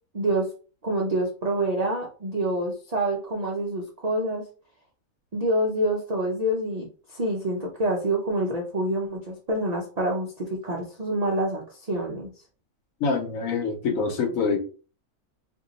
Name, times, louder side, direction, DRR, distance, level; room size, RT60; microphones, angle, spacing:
voice 1, 0.1-0.5 0.8-4.5 5.3-12.3, right 1 dB, 85° right, -1 dB, 0.3 m, -27 dB
voice 2, 13.0-14.6, left 5 dB, 70° left, 4 dB, 1.1 m, -25 dB
2.6 x 2.2 x 3.8 m, 0.37 s
omnidirectional pair, 1.6 m